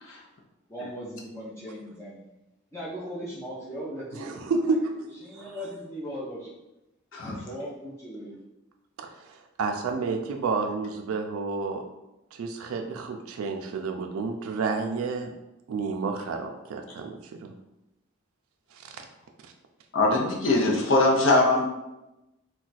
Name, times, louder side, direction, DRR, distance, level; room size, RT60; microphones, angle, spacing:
voice 1, 0.7-2.2 2.7-4.4 4.7-4.8 5.2-6.5 7.2-8.4, equal, 15° left, -8 dB, 0.6 m, -38 dB
voice 2, 4.1-4.9 5.4-5.6 9.0-11.8 12.3-15.3 15.7-17.5 18.7-18.9 19.4-19.5, right 4 dB, 85° right, 4 dB, 0.3 m, -30 dB
voice 3, 7.1-7.4 19.9-21.7, left 2 dB, 65° left, -2 dB, 0.6 m, -21 dB
2.4 x 2.2 x 4.0 m, 0.96 s
head